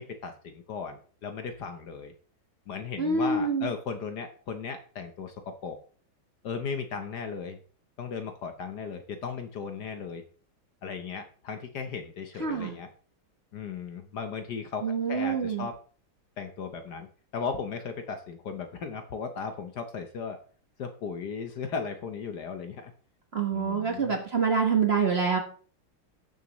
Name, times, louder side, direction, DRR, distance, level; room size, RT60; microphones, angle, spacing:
voice 1, 0.0-2.1 2.7-5.8 6.4-7.6 8.0-10.2 10.8-12.9 13.5-15.8 16.4-17.1 17.3-20.4 20.8-22.9 23.5-24.2, left 5 dB, 60° left, 7 dB, 1.3 m, -36 dB
voice 2, 3.0-3.7 12.4-12.8 14.8-15.7 23.3-25.4, right 5 dB, 35° right, 3 dB, 1.3 m, -26 dB
17.5 x 6.6 x 3.1 m, 0.42 s
omnidirectional pair, 2.3 m